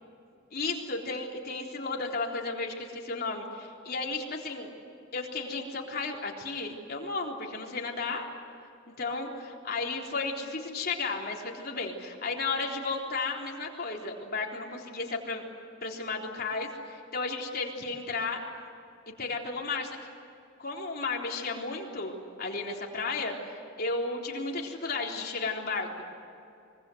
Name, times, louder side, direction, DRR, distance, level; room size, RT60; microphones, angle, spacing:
voice 1, 0.5-4.7 5.1-8.3 9.0-15.4 15.8-18.4 19.2-20.0 20.6-22.1 22.4-26.0, left 3 dB, 50° left, 0 dB, 3.9 m, -33 dB
25.5 x 24.0 x 8.1 m, 2.6 s
head